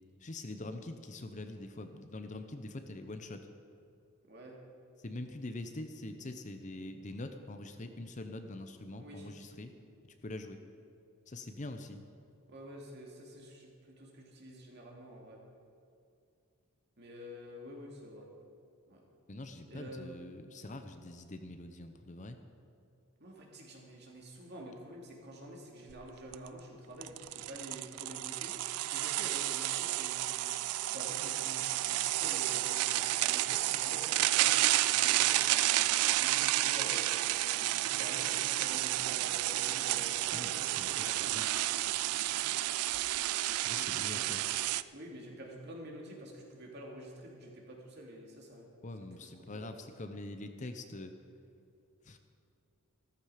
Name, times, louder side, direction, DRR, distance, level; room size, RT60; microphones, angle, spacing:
voice 1, 0.2-3.4 5.0-9.7 10.1-10.6 11.3-12.0 19.3-22.4 40.3-41.5 43.6-44.4 48.8-51.1 52.0-52.2, left 2 dB, 35° left, 7 dB, 0.7 m, -44 dB
voice 2, 4.2-4.6 9.0-9.3 12.5-15.4 17.0-18.3 18.9-19.1 19.7-20.2 23.2-28.6 28.9-30.4 30.9-37.1 37.6-41.4 43.7-44.3 44.9-48.7 49.0-49.1, equal, 50° right, -1 dB, 2.6 m, -48 dB
sound 1, 25.9-26.0 26.3-26.5 27.0-44.8, right 15 dB, 90° right, 0.4 m, -31 dB
15.0 x 13.5 x 5.0 m, 2.5 s
head